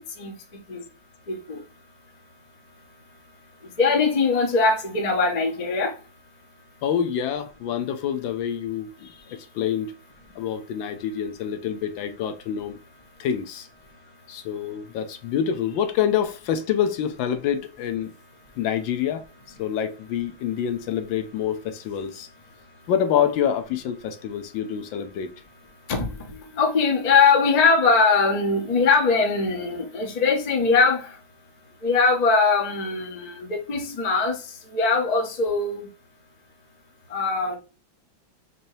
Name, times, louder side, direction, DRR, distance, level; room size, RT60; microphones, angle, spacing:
voice 1, 1.3-1.6 3.8-5.9 25.9-31.1 31.8-34.3 34.7-35.9 37.1-37.6, left 4 dB, 45° left, 0.5 m, -21 dB
voice 2, 6.8-9.9 10.4-12.8 13.2-13.7 14.3-18.1 18.6-19.2 19.6-22.3 22.9-25.3, left 9 dB, 80° left, 1.3 m, -26 dB
4.1 x 2.7 x 3.1 m
omnidirectional pair, 2.1 m